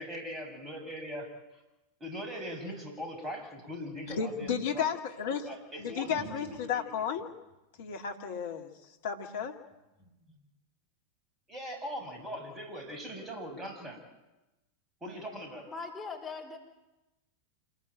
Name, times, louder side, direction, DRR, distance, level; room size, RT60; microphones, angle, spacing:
voice 1, 0.0-1.6 2.0-4.9 5.4-6.9 10.3-10.4 11.5-14.0 15.0-15.7, equal, 15° right, 3 dB, 6.8 m, -41 dB
voice 2, 4.1-5.4 5.8-7.3 7.8-8.7 9.0-9.6, left 7 dB, 55° left, 4 dB, 2.6 m, -33 dB
voice 3, 15.7-16.6, left 4 dB, 15° left, 1 dB, 4.1 m, -40 dB
27.0 x 20.0 x 9.1 m, 1.0 s
figure-of-eight pair, 90°, 0 cm